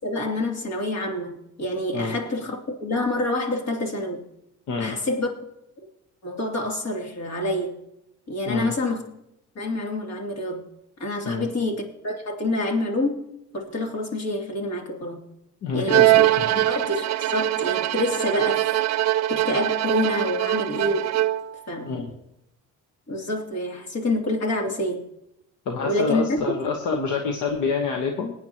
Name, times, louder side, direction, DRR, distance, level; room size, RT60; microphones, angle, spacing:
voice 1, 0.0-4.2 4.8-5.3 6.2-7.8 8.3-9.0 9.5-10.6 11.0-13.2 13.5-15.2 15.7-16.3 16.7-18.7 19.3-21.3 21.7-22.0 23.1-25.1 25.8-26.6, left 1 dB, 60° left, 1 dB, 3.1 m, -27 dB
voice 2, 4.7-5.0 8.5-8.7 11.2-11.4 15.6-16.7 21.9-22.1 25.7-28.3, left 5 dB, 80° left, 3 dB, 1.3 m, -27 dB
Bowed string instrument, 15.9-21.6, right 14 dB, 60° right, 0.5 m, -22 dB
21.5 x 9.1 x 3.0 m, 0.83 s
cardioid pair, 90°, 30 cm